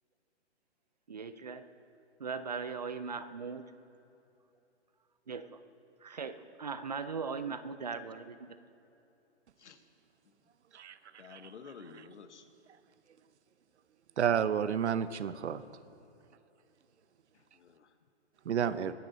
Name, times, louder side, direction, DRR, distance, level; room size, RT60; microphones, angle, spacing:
voice 1, 1.1-1.7 2.2-3.6 5.3-5.6 6.0-8.6, right 5 dB, 40° right, 12 dB, 0.5 m, -39 dB
voice 2, 11.2-12.5 17.3-17.9, left 5 dB, 75° left, 9 dB, 1.3 m, -51 dB
voice 3, 14.2-15.6 18.5-18.9, right 8 dB, 75° right, 14 dB, 0.8 m, -30 dB
23.0 x 9.7 x 4.0 m, 2.9 s
hypercardioid pair, 175°, 35 cm